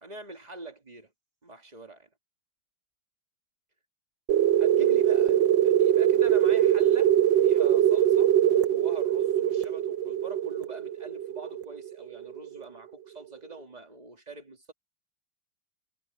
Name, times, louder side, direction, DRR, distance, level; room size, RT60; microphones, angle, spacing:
voice 1, 0.0-1.1 1.4-2.1 4.6-14.7, right 3 dB, 20° right, 2.4 m, -45 dB
sound 1, 4.3-12.6, right 10 dB, 70° right, 1.2 m, -23 dB
omnidirectional pair, 2.4 m